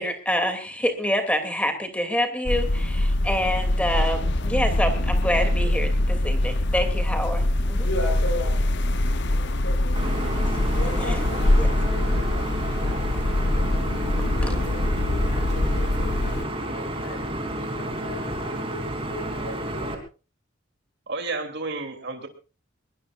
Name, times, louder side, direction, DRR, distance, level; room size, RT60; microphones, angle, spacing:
voice 1, 0.0-7.9 10.8-11.2 11.6-11.7 14.4-14.5, equal, 5° left, 6 dB, 2.8 m, -27 dB
sound 1, 2.5-16.5, left 1 dB, 55° left, 0.9 m, -23 dB
voice 2, 7.8-8.8 9.3-10.4 10.7-13.8 14.3-19.9, left 1 dB, 75° left, -3 dB, 7.3 m, -37 dB
sound 2, 10.0-20.0, right 1 dB, 25° right, 3.2 m, -31 dB
voice 3, 21.1-22.3, right 3 dB, 55° right, 6 dB, 3.0 m, -31 dB
21.5 x 21.0 x 2.5 m, 0.34 s
head